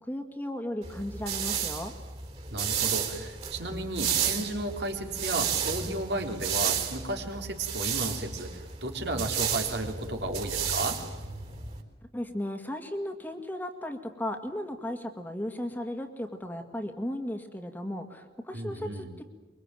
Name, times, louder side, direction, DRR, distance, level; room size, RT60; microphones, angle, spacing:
voice 1, 0.0-1.9 12.1-19.2, left 1 dB, 10° left, 5 dB, 2.0 m, -35 dB
sound 1, 0.8-11.8, right 8 dB, 35° right, 3.8 m, -32 dB
voice 2, 2.5-11.0 18.5-19.1, right 1 dB, 70° right, 3 dB, 3.8 m, -33 dB
24.0 x 23.0 x 9.1 m, 1.3 s
head